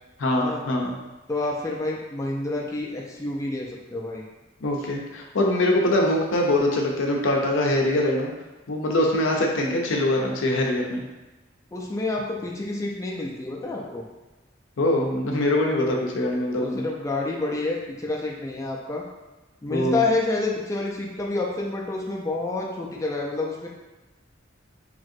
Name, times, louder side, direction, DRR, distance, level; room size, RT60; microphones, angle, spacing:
voice 1, 0.2-0.9 4.6-8.3 8.7-11.0 14.8-16.8 19.7-20.0, left 1 dB, 85° left, 0 dB, 0.5 m, -23 dB
voice 2, 1.3-4.2 11.7-14.0 16.5-19.0 19.6-23.7, left 2 dB, 15° left, -2 dB, 0.3 m, -28 dB
2.9 x 2.6 x 2.5 m, 1.1 s
head